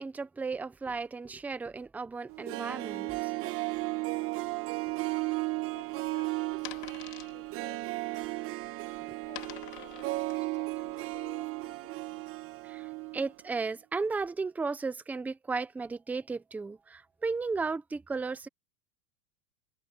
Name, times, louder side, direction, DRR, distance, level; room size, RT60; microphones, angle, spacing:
voice 1, 0.0-3.3 9.1-9.2 12.6-18.5, right 4 dB, 5° right, 0.6 m, -35 dB
Harp, 2.3-13.3 13.6-13.7, right 20 dB, 30° right, 1.2 m, -35 dB
sound 1, 4.9-11.3, left 22 dB, 55° left, 4.0 m, -49 dB
voice 2, 5.7-7.0 7.2-7.8 9.3-12.7, left 10 dB, 25° left, 5.0 m, -56 dB
open air
supercardioid pair, 150°, 45 cm